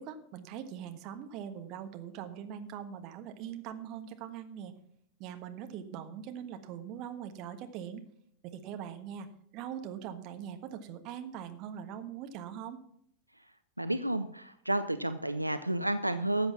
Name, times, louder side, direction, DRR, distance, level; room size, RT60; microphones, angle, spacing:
voice 1, 0.0-4.7 5.2-8.0 8.4-9.3 9.5-12.8, right 9 dB, 40° right, 7 dB, 1.3 m, -42 dB
voice 2, 13.8-16.5, right 1 dB, 85° right, 10 dB, 0.5 m, -31 dB
13.5 x 7.9 x 5.8 m, 0.68 s
figure-of-eight pair, 90°, 0 cm